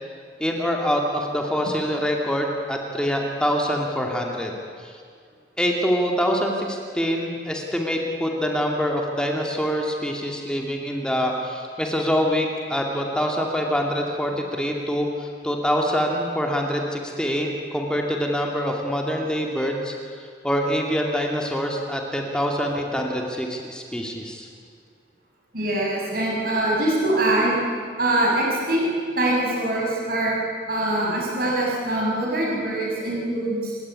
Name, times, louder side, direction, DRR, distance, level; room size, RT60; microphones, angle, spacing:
voice 1, 0.4-4.6 4.8-4.9 5.6-19.9 20.4-24.5, equal, 5° left, 0 dB, 2.5 m, -25 dB
voice 2, 25.5-27.6 28.0-28.9 29.2-30.4 30.7-33.8, right 1 dB, 55° right, -3 dB, 7.2 m, -23 dB
29.5 x 17.0 x 9.8 m, 2.1 s
head